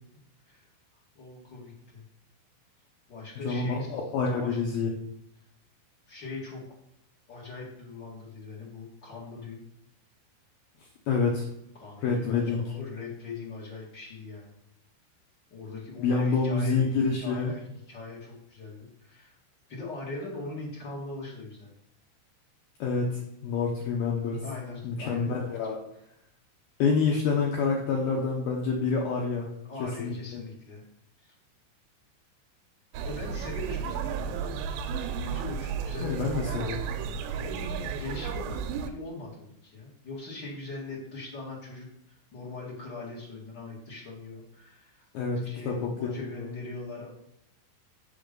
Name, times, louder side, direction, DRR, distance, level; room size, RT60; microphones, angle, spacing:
voice 1, 1.1-2.0 3.1-4.0 4.2-4.8 6.1-6.8 7.3-9.6 11.8-14.5 15.5-19.3 19.7-21.7 24.4-25.6 29.6-30.8 31.2-31.3 33.0-34.4 35.2-36.8 37.3-45.0 45.3-47.1, left 3 dB, 60° left, -5 dB, 1.1 m, -41 dB
voice 2, 3.4-4.9 11.1-11.5 12.0-12.7 16.0-17.5 22.8-24.4 24.8-25.8 26.8-29.5 29.8-30.4 36.0-36.8 45.1-46.5, left 4 dB, 80° left, -1 dB, 2.2 m, -27 dB
sound 1, 32.9-38.9, right 6 dB, 85° right, 3.3 m, -33 dB
6.9 x 6.8 x 5.2 m, 0.76 s
omnidirectional pair, 5.6 m